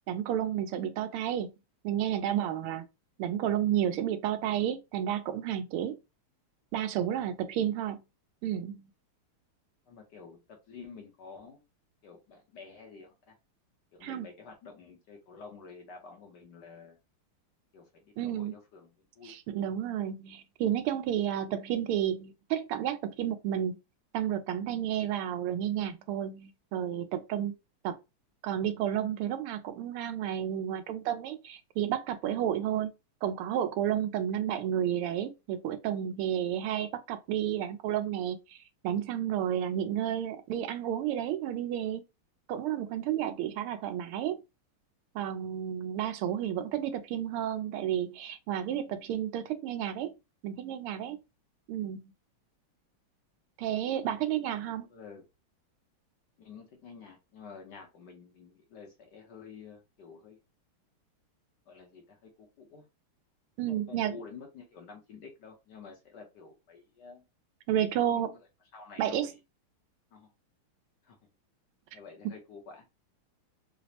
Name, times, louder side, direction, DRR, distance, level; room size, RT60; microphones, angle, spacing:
voice 1, 0.1-1.5 1.8-2.8 3.2-6.0 6.7-8.0 8.4-8.8 14.0-14.2 18.2-18.5 19.2-23.8 24.1-27.5 27.8-28.0 28.4-32.9 33.2-38.6 38.8-42.0 42.5-44.4 45.1-50.1 50.4-51.2 51.7-52.1 53.6-54.9 63.6-64.2 67.7-68.3 69.0-69.3, right 10 dB, 85° right, 1.5 m, -31 dB
voice 2, 9.9-11.6 12.0-13.4 13.9-17.0 17.7-19.4 54.9-55.3 56.4-60.4 61.7-62.9 63.7-67.2 68.1-68.4 68.7-69.4 70.1-70.3 71.0-71.2 71.9-72.9, left 5 dB, 65° left, 1.2 m, -50 dB
5.0 x 2.0 x 2.8 m
omnidirectional pair, 2.4 m